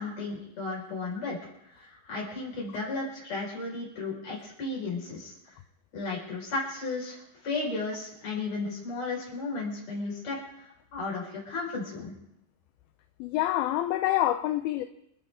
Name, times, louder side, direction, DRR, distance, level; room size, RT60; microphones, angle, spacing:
voice 1, 0.0-1.4 1.7-5.3 5.9-12.1, left 3 dB, 40° left, 6.2 m, -34 dB
voice 2, 13.2-14.9, left 14 dB, 80° left, 2.5 m, -26 dB
28.0 x 10.5 x 3.7 m
omnidirectional pair, 4.6 m